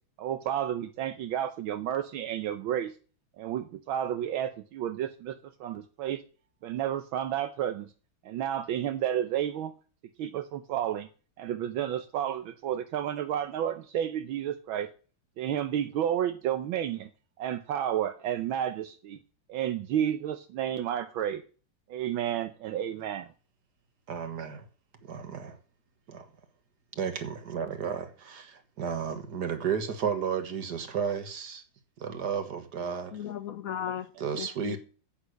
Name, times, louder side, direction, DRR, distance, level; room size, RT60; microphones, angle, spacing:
voice 1, 0.2-2.9 3.4-6.2 6.6-7.9 8.2-9.7 10.2-11.1 11.4-14.9 15.4-17.1 17.4-19.2 19.5-21.4 21.9-23.3, right 10 dB, 80° right, 1.6 m, -31 dB
voice 2, 24.1-24.7 25.0-25.6 26.1-26.3 27.0-31.6 32.0-33.1 34.2-34.8, right 7 dB, 55° right, 1.9 m, -33 dB
voice 3, 33.1-34.8, left 10 dB, 80° left, 0.7 m, -36 dB
9.8 x 8.4 x 6.5 m
omnidirectional pair, 2.2 m